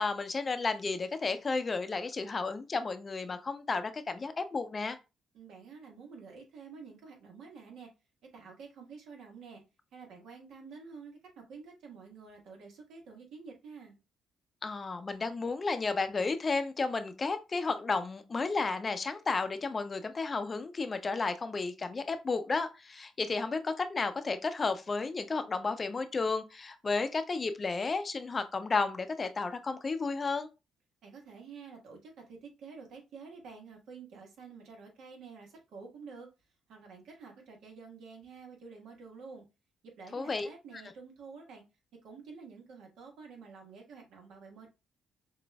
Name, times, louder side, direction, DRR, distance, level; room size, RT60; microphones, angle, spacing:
voice 1, 0.0-5.0 14.6-30.5 40.1-40.5, left 4 dB, 35° left, 0.5 m, -32 dB
voice 2, 5.3-7.9 8.3-9.6 9.9-14.0 31.0-36.3 36.7-39.4 39.8-41.6 42.0-44.7, right 5 dB, 80° right, 1.3 m, -49 dB
6.1 x 2.5 x 2.2 m
cardioid pair, 90°, 0 cm